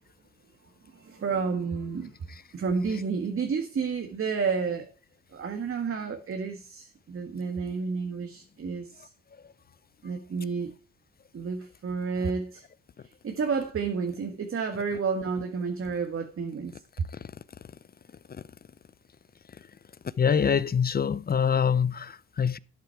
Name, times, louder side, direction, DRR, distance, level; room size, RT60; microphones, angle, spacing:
voice 1, 0.9-2.1 2.5-4.9 5.3-9.1 10.0-10.7 11.3-12.6 13.2-16.8, right 5 dB, 45° right, 1.7 m, -30 dB
voice 2, 20.2-22.6, left 7 dB, 30° left, 0.6 m, -24 dB
12.0 x 8.3 x 4.6 m
cardioid pair, 90°, 30 cm